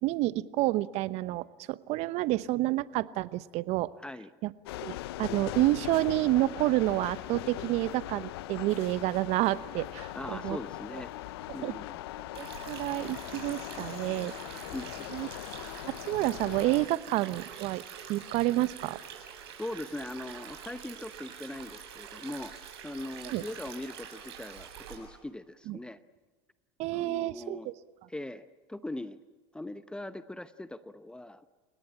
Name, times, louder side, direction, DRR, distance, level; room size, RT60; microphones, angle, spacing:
voice 1, 0.0-3.9 4.4-4.5 4.8-10.6 11.6-11.7 12.4-14.6 15.1-15.3 15.8-17.8 18.1-19.0 23.3-23.4 25.7-25.8 26.8-27.7, right 17 dB, 55° right, 16 dB, 0.9 m, -29 dB
voice 2, 4.0-4.3 10.1-11.1 11.5-12.0 14.7-15.1 19.6-22.5 22.8-26.0 26.9-27.7 28.1-29.2 29.5-31.4, left 1 dB, 5° left, 12 dB, 0.8 m, -40 dB
sound 1, 4.7-16.9, left 15 dB, 75° left, 0.7 m, -40 dB
Stream, 12.3-24.9, right 8 dB, 75° right, 7.5 m, -46 dB
29.5 x 18.0 x 9.0 m, 1.3 s
hypercardioid pair, 85°, 13 cm